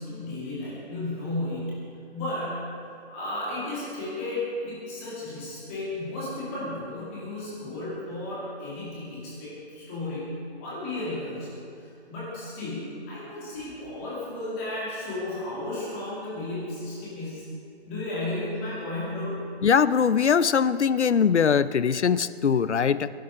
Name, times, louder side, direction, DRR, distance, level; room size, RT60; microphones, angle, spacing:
voice 1, 0.0-1.7 2.1-2.7 3.1-17.4 17.8-19.4, left 2 dB, 10° left, -8 dB, 2.5 m, -34 dB
voice 2, 19.6-23.1, left 7 dB, 85° left, 15 dB, 0.7 m, -21 dB
24.5 x 10.5 x 4.9 m, 2.6 s
hypercardioid pair, 170°, 33 cm